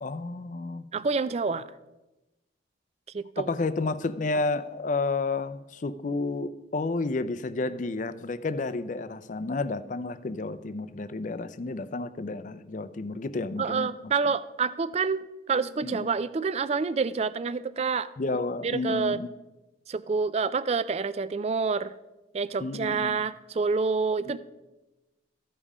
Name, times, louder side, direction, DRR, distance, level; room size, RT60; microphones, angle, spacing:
voice 1, 0.0-0.8 3.4-13.9 15.8-16.1 18.2-19.3 22.6-23.2 24.3-24.4, left 3 dB, 40° left, 13 dB, 0.4 m, -31 dB
voice 2, 0.9-1.6 3.1-3.5 13.6-18.1 18.6-19.2 19.9-21.9 22.3-24.4, right 4 dB, 35° right, 16 dB, 0.3 m, -28 dB
14.0 x 5.4 x 4.8 m, 1.1 s
head